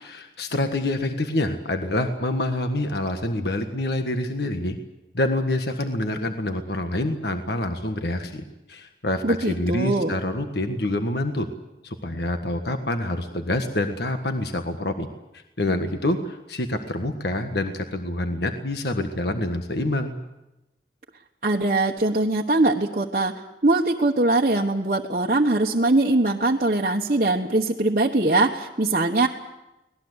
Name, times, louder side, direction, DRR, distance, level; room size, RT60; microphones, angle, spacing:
voice 1, 0.0-4.8 5.1-11.5 11.8-15.1 15.3-20.2, left 1 dB, 65° left, 6 dB, 1.5 m, -27 dB
voice 2, 9.2-10.1 21.4-29.3, right 2 dB, 45° right, -2 dB, 1.2 m, -22 dB
24.5 x 19.0 x 8.1 m, 0.95 s
head